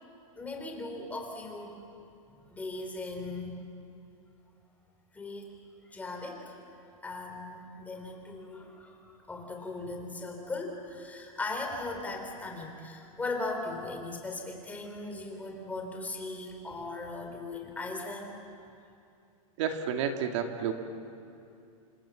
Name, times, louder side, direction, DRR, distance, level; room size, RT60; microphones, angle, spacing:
voice 1, 0.4-1.8 2.5-3.6 5.1-5.5 5.9-6.6 7.0-18.4, left 2 dB, 10° left, 2 dB, 3.4 m, -38 dB
voice 2, 19.6-20.7, right 7 dB, 55° right, 4 dB, 2.2 m, -30 dB
27.5 x 26.0 x 7.2 m, 2.6 s
supercardioid pair, 155°, 18 cm